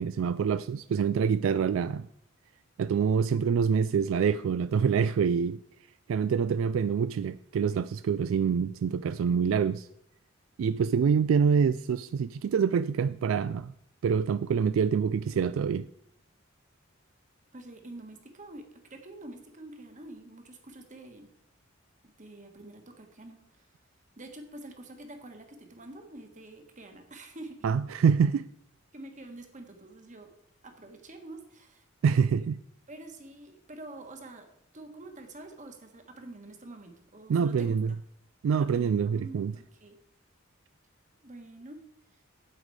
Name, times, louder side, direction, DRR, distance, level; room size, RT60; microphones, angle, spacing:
voice 1, 0.0-2.1 2.8-5.6 6.1-9.9 10.6-13.7 14.0-15.8 27.6-28.5 32.0-32.6 37.3-37.9 38.4-39.5, right 6 dB, 75° right, 14 dB, 0.3 m, -26 dB
voice 2, 17.5-21.3 22.0-23.7 24.2-27.7 28.9-30.3 30.6-31.8 32.9-34.5 34.7-37.8 38.6-40.0 41.2-41.8, right 2 dB, 40° right, 5 dB, 1.5 m, -47 dB
8.9 x 8.3 x 4.8 m, 0.72 s
head